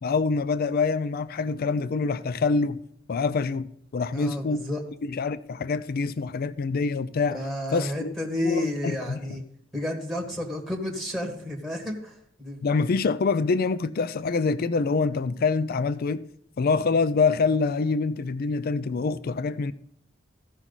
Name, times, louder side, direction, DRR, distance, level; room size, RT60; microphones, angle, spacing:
voice 1, 0.0-2.8 3.1-4.6 5.0-7.4 7.7-8.1 8.4-9.2 12.6-16.2 16.6-19.7, left 4 dB, 50° left, 0.4 m, -25 dB
voice 2, 4.1-4.8 7.3-9.4 9.7-12.1 12.4-12.6, left 1 dB, ahead, 1.5 m, -31 dB
14.5 x 6.1 x 4.0 m
head